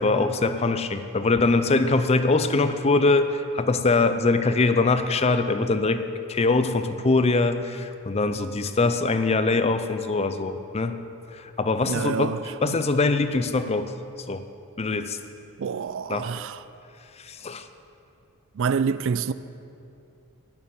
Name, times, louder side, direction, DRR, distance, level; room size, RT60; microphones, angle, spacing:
voice 1, 0.0-11.0 11.3-12.4 12.6-13.9 14.3-14.4 14.8-15.2 16.1-16.2 17.2-17.7, left 3 dB, 30° left, 0.5 m, -23 dB
voice 2, 11.9-12.8 15.6-16.6 18.5-19.3, right 6 dB, 60° right, 0.4 m, -27 dB
11.0 x 7.0 x 9.5 m
head